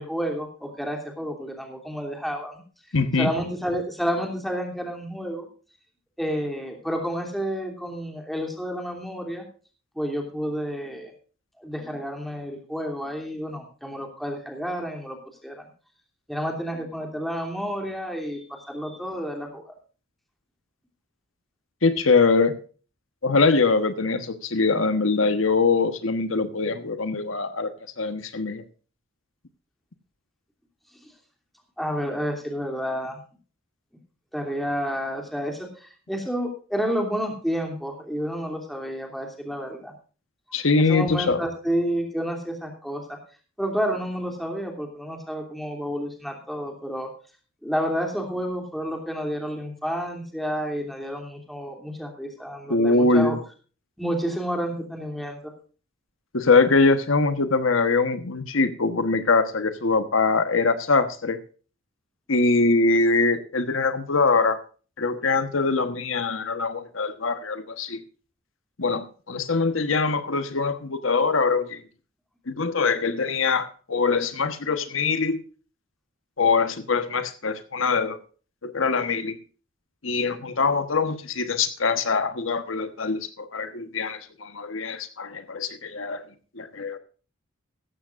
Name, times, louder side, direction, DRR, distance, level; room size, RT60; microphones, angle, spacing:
voice 1, 0.0-2.6 3.2-5.5 6.2-9.4 9.9-11.1 11.6-15.2 15.4-15.7 16.3-19.7 31.8-33.2 34.3-39.9 40.7-43.2 43.6-47.1 47.6-53.4 54.0-55.5, equal, ahead, 2 dB, 3.0 m, -30 dB
voice 2, 2.9-3.3 21.8-22.5 23.2-27.7 28.0-28.6 40.5-41.4 52.7-53.4 56.3-61.4 62.3-64.6 65.0-68.0 68.8-71.8 72.5-75.4 76.4-78.2 78.6-79.4 80.0-86.2 86.6-87.0, left 4 dB, 85° left, 10 dB, 1.3 m, -23 dB
16.0 x 14.5 x 2.6 m, 0.38 s
head